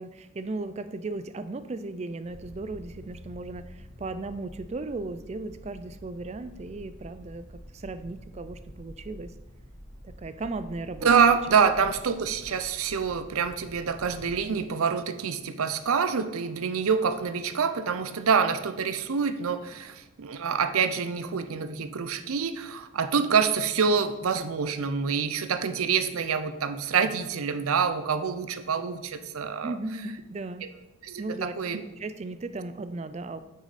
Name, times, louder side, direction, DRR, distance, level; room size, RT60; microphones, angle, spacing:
voice 1, 0.0-9.3 10.0-11.1 11.5-11.6 29.6-30.6 31.2-31.6 32.0-33.4, right 2 dB, 30° right, 12 dB, 0.3 m, -36 dB
sound 1, 2.2-14.5, equal, 80° left, 3.2 m, -47 dB
voice 2, 11.0-29.7 31.0-31.8, right 6 dB, 80° right, 10 dB, 0.6 m, -26 dB
8.2 x 6.3 x 4.1 m, 1.0 s
head